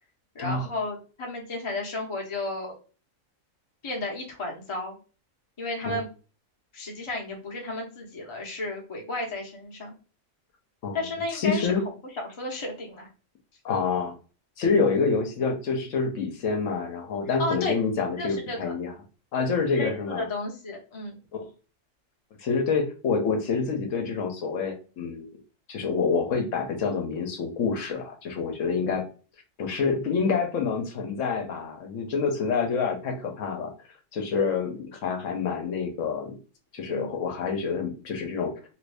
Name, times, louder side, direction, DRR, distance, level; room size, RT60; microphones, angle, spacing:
voice 1, 0.3-2.7 3.8-5.0 5.6-6.1 6.7-9.9 10.9-11.7 12.1-13.1 17.4-17.8 18.2-18.7 19.8-21.2 36.8-37.2, left 2 dB, 30° left, 0 dB, 0.7 m, -33 dB
voice 2, 11.3-11.8 13.6-14.1 14.6-18.9 19.3-20.3 21.3-21.5 22.4-25.3 25.7-29.0 29.6-33.7 34.1-36.3 36.7-38.5, left 5 dB, 70° left, 3 dB, 1.0 m, -27 dB
2.9 x 2.6 x 3.3 m, 0.35 s
omnidirectional pair, 1.4 m